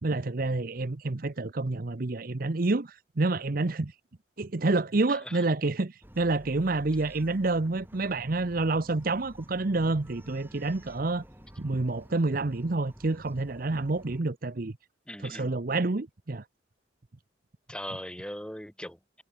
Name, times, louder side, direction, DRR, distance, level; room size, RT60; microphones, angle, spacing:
voice 1, 0.0-3.9 4.4-11.2 11.6-14.7 15.2-16.4, right 2 dB, 50° right, 0.8 m, -28 dB
voice 2, 5.1-5.4 15.1-15.6 17.7-19.2, equal, 5° left, 4.5 m, -40 dB
Bark, 6.0-14.2, equal, 10° right, 3.9 m, -51 dB
head